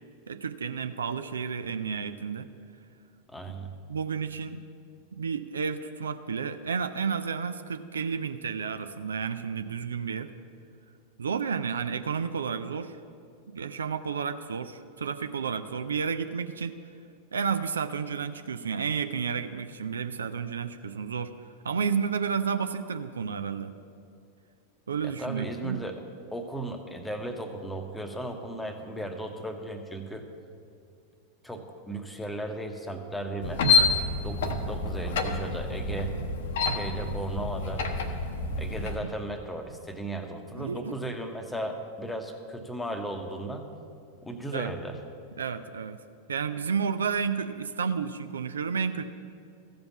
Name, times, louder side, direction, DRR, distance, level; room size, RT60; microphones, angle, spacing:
voice 1, 0.3-2.5 3.9-4.6 5.2-10.3 11.2-12.9 13.5-16.8 17.3-21.3 21.6-23.7 24.9-25.8 33.7-33.9 40.6-40.9 44.5-44.7 45.4-46.0 46.3-49.0, right 6 dB, 70° right, 10 dB, 0.4 m, -31 dB
voice 2, 3.3-3.7 25.0-25.9 26.3-30.3 31.4-33.9 34.2-36.1 36.7-37.9 38.6-43.7 44.2-45.0, right 1 dB, 5° left, 5 dB, 0.9 m, -36 dB
sound 1, 33.4-39.0, left 4 dB, 60° left, 0.8 m, -28 dB
14.0 x 5.2 x 7.1 m, 2.5 s
figure-of-eight pair, 90°, 0 cm